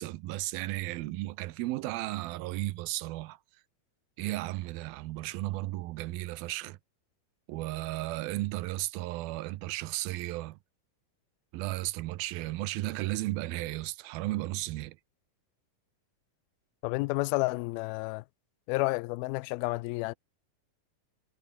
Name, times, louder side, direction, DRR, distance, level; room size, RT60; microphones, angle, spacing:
voice 1, 0.0-3.4 4.2-6.8 7.5-10.6 11.5-15.0, right 18 dB, 85° right, 2.6 m, -34 dB
voice 2, 16.8-18.2 18.7-20.1, left 23 dB, 90° left, 2.4 m, -30 dB
omnidirectional pair, 4.2 m